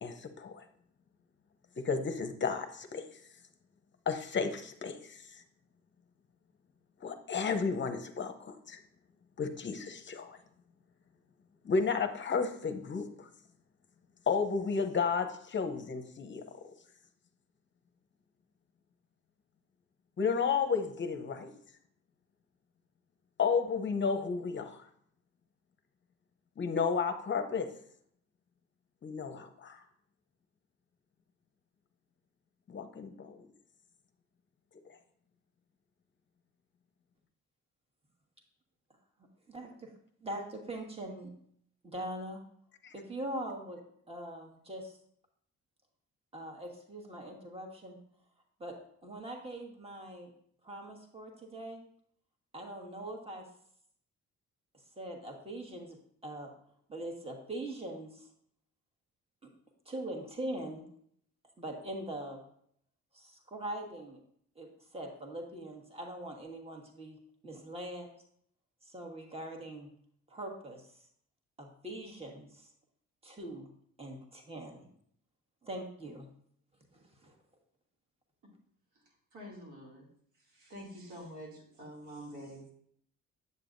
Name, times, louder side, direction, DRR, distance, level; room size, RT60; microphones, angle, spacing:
voice 1, 0.0-0.6 1.8-3.0 4.1-5.4 7.0-8.8 9.4-10.4 11.6-13.3 14.3-16.4 20.2-21.5 23.4-24.9 26.6-27.7 29.0-29.8 32.7-33.4 42.8-42.9, left 5 dB, 40° left, 7 dB, 0.7 m, -32 dB
voice 2, 39.5-39.9 40.2-41.3 41.8-42.4 42.9-43.8 44.1-45.0 46.3-48.0 48.6-48.7 49.0-50.3 50.6-51.8 52.5-53.4 55.0-56.0 56.2-56.5 56.9-58.3 59.4-59.5 59.8-60.8 61.6-62.4 63.1-64.2 64.5-67.2 67.4-68.1 68.8-69.9 70.3-70.9 71.6-72.7 73.2-73.7 74.0-74.9 75.6-76.3 76.9-77.3, right 1 dB, 20° right, 2 dB, 1.5 m, -42 dB
voice 3, 79.3-80.0 80.6-81.5 81.8-82.7, equal, 80° right, -2 dB, 2.5 m, -46 dB
8.2 x 6.8 x 2.6 m, 0.65 s
cardioid pair, 90°, 30 cm